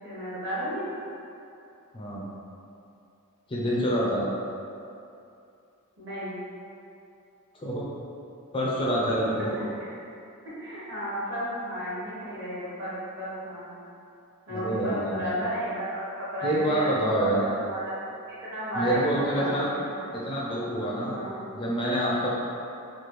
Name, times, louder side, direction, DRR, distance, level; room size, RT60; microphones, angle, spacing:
voice 1, 0.0-0.9 6.0-6.4 9.8-9.9 10.4-13.7 14.5-15.9 16.2-17.9 18.4-20.1 20.6-20.7 21.1-21.4, equal, 55° right, -10 dB, 1.1 m, -33 dB
voice 2, 1.9-2.2 3.5-4.3 7.6-7.9 8.5-9.5 14.5-15.2 16.4-17.5 18.7-19.7 20.1-21.2 21.5-22.3, right 1 dB, 25° left, -6 dB, 0.4 m, -27 dB
3.3 x 2.2 x 2.9 m, 2.6 s
head